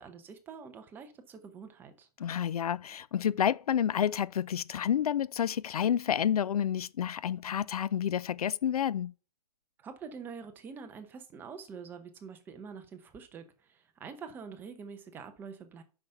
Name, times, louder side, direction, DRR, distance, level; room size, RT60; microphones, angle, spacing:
voice 1, 0.0-2.1 9.8-15.8, right 6 dB, 10° right, 0.7 m, -46 dB
voice 2, 2.2-9.1, left 9 dB, 70° left, 0.4 m, -29 dB
7.0 x 5.7 x 5.6 m
hypercardioid pair, 150°, 20 cm